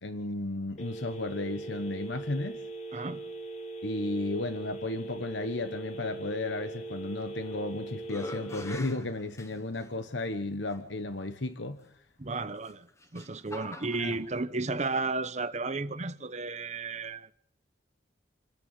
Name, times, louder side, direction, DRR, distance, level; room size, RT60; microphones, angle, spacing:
voice 1, 0.0-2.6 3.8-11.8 14.0-14.1, left 2 dB, 85° left, 1.2 m, -34 dB
Telephone, 0.8-8.8, right 2 dB, 40° left, 2.1 m, -40 dB
voice 2, 2.9-3.2 12.2-12.9 13.1-17.3, right 3 dB, 40° right, 1.0 m, -33 dB
sound 1, 7.2-7.7 8.0-9.9 10.7-10.8 12.5-14.2, left 2 dB, 15° left, 1.3 m, -45 dB
28.0 x 10.5 x 9.1 m
head